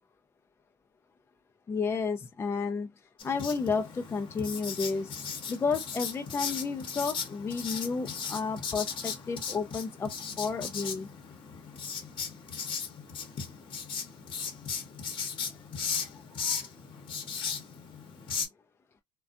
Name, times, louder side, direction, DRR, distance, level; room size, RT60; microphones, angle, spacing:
voice 1, 1.7-2.9 3.2-5.2 5.5-11.1 16.0-16.7, left 5 dB, 20° left, 0.3 m, -32 dB
Writing, 3.2-18.5, left 6 dB, 45° left, 0.8 m, -37 dB
2.4 x 2.2 x 2.4 m
hypercardioid pair, 80°, 12 cm